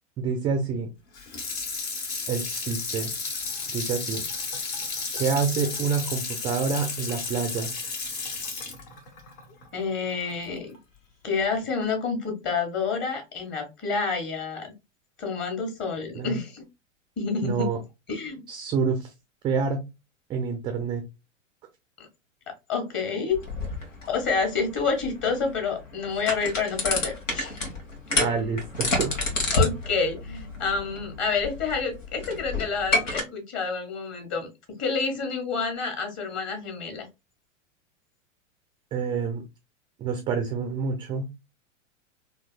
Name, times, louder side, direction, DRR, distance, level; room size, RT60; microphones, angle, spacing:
voice 1, 0.2-0.9 2.3-3.1 3.7-4.2 5.1-7.7 16.1-16.3 17.4-17.8 18.5-19.1 19.4-19.8 20.3-21.0 28.1-29.2 38.9-39.4 40.0-41.3, right 5 dB, 15° right, 6 dB, 0.3 m, -27 dB
Water tap faucet / Sink (filling or washing), 1.1-10.3 10.7-10.8, left 4 dB, 50° left, 1.7 m, -33 dB
voice 2, 9.7-10.8 11.2-14.7 15.2-16.6 17.2-17.7 18.1-18.4 22.7-23.4 24.0-27.6 28.2-28.3 29.5-37.1, left 5 dB, 30° left, 4 dB, 1.6 m, -28 dB
sound 1, 23.3-33.2, left 2 dB, 75° left, 1.6 m, -30 dB
4.0 x 2.7 x 2.3 m, 0.24 s
hypercardioid pair, 100°, 38 cm